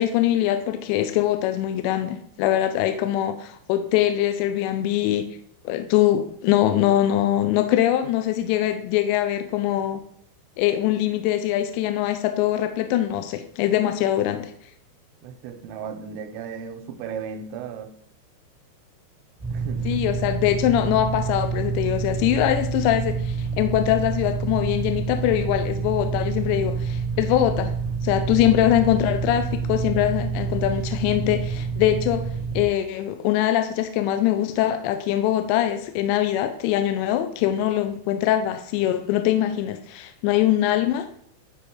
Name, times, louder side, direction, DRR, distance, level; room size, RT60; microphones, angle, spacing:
voice 1, 0.0-5.3 5.7-10.0 10.6-14.5 19.9-27.7 28.0-32.3 32.6-41.1, left 12 dB, 80° left, 2.6 m, -22 dB
voice 2, 15.2-17.9 19.5-20.1, right 6 dB, 90° right, 3.2 m, -35 dB
sound 1, 19.4-32.6, right 5 dB, 60° right, 0.4 m, -28 dB
11.5 x 5.1 x 4.6 m
omnidirectional pair, 5.7 m